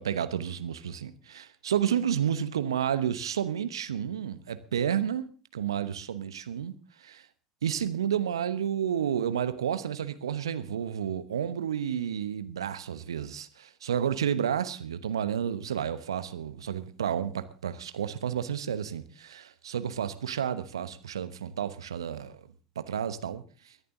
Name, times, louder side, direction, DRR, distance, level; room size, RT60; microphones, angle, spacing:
voice 1, 0.0-5.3 5.5-6.7 7.0-7.2 7.6-22.4 22.8-23.8, right 9 dB, 80° right, 1.0 m, -31 dB
23.5 x 10.5 x 3.8 m
figure-of-eight pair, 70°, 3 cm